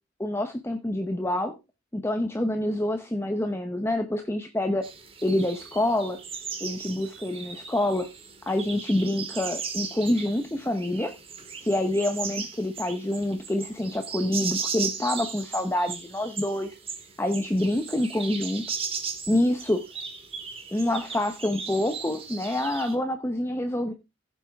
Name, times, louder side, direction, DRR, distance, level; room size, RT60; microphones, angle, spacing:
voice 1, 0.2-1.5 1.9-4.8 5.2-6.2 6.6-8.1 8.5-11.1 11.6-16.8 17.2-18.7 19.3-19.8 20.7-23.9, left 1 dB, 15° left, 7 dB, 0.8 m, -27 dB
sound 1, 4.8-22.9, right 6 dB, 30° right, 1.9 m, -37 dB
15.5 x 7.1 x 3.5 m, 0.25 s
head